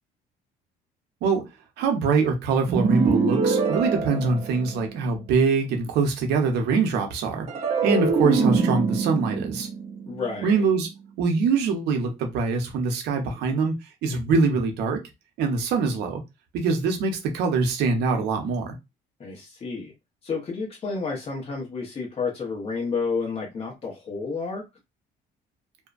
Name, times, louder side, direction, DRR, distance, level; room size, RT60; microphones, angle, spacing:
voice 1, 1.8-7.5 7.8-9.7 10.4-10.9 11.2-13.7 14.0-15.0 15.4-16.2 16.5-18.8, right 4 dB, 80° right, 0.8 m, -23 dB
sound 1, 2.7-5.1 7.5-10.8, right 4 dB, 40° right, 0.6 m, -24 dB
voice 2, 10.1-10.6 19.2-19.9 20.2-24.6, left 4 dB, 35° left, 0.9 m, -30 dB
2.6 x 2.2 x 2.4 m
cardioid pair, 110°, 17 cm